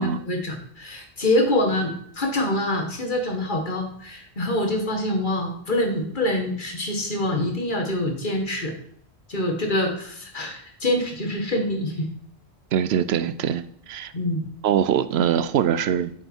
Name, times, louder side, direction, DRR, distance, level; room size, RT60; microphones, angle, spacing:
voice 1, 0.0-8.7 9.3-12.1 14.1-14.4, left 1 dB, 50° left, 3 dB, 1.8 m, -25 dB
voice 2, 12.7-14.1 14.6-16.1, right 9 dB, 75° right, 14 dB, 0.8 m, -23 dB
8.6 x 6.9 x 4.4 m, 0.65 s
omnidirectional pair, 1.1 m